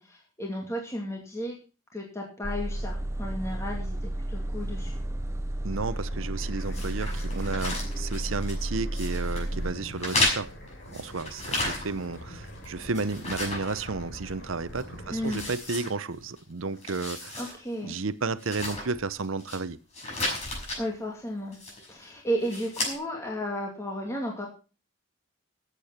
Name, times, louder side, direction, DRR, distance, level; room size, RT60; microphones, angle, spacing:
voice 1, 0.0-1.6 1.9-4.9 15.1-15.4 17.4-17.9 20.8-21.6 21.9-24.5, equal, 15° left, 2.4 m, -33 dB
sound 1, 2.4-9.7, right 1 dB, 15° right, 0.8 m, -32 dB
voice 2, 5.6-10.5 10.9-17.5 17.8-19.8, right 4 dB, 80° right, 0.8 m, -32 dB
sound 2, 5.7-15.6, left 1 dB, 55° left, 4.0 m, -44 dB
sound 3, 6.7-8.6 8.9-9.5 10.0-12.1 12.5-14.4 14.7-14.8 15.2-16.4 16.7-17.5 17.9-18.0 18.4-19.6 19.9-20.8 21.5-22.0 22.4-22.9, left 2 dB, 35° left, 6.0 m, -33 dB
14.0 x 8.4 x 5.8 m
head